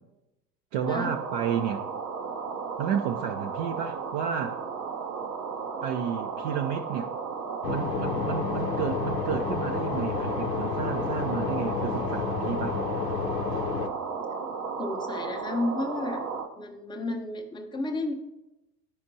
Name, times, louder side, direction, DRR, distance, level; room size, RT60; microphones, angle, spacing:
voice 1, 0.7-1.9 2.8-4.6 5.8-7.1 7.7-12.8, right 8 dB, 45° right, 4 dB, 0.6 m, -31 dB
sound 1, 0.8-16.5, right 5 dB, 70° right, 0.9 m, -34 dB
sound 2, 7.6-13.9, left 7 dB, 75° left, 0.7 m, -31 dB
voice 2, 14.8-16.2 16.6-18.1, left 2 dB, 10° left, 3 dB, 0.6 m, -32 dB
13.5 x 5.1 x 2.7 m, 1.0 s
figure-of-eight pair, 75°, 49 cm